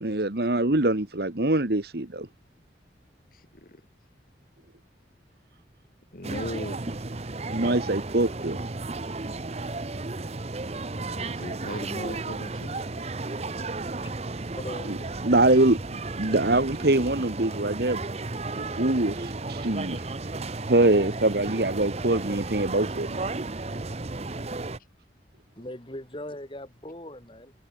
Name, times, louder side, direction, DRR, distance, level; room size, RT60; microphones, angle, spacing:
voice 1, 0.0-2.3 7.5-8.6 14.9-15.0 15.2-18.0 18.5-20.1 20.7-23.5, right 2 dB, 60° right, 1.5 m, -24 dB
voice 2, 3.3-3.8 6.1-6.8 11.2-12.8 16.2-16.5 16.8-16.9, left 1 dB, 50° left, 3.7 m, -38 dB
sound 1, 6.2-24.8, right 3 dB, 35° right, 0.9 m, -33 dB
voice 3, 14.6-15.1 25.6-27.5, left 1 dB, 30° left, 4.4 m, -39 dB
head